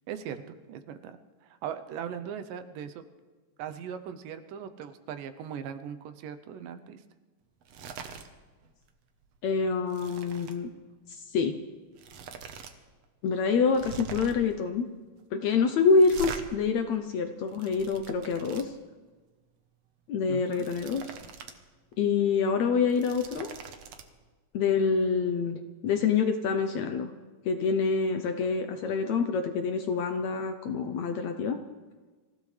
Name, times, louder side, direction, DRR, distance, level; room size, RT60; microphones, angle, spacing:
voice 1, 0.1-3.1 3.6-7.0 20.3-20.6, right 8 dB, 80° right, 10 dB, 2.4 m, -39 dB
sound 1, 7.6-8.3 8.6-8.9 9.2-10.6 11.5-11.6 11.9-12.7 13.0-13.1 13.7-14.5 16.0-16.4 17.2-18.6 20.3-21.6 21.9-22.0 22.7-24.0, right 6 dB, 65° right, 1.7 m, -42 dB
voice 2, 9.4-10.7 11.1-11.6 13.2-14.9 15.3-18.7 20.1-21.2 22.0-23.5 24.5-27.1 27.4-31.6, left 5 dB, 75° left, 6 dB, 1.7 m, -26 dB
26.0 x 15.5 x 3.3 m, 1.3 s
omnidirectional pair, 3.9 m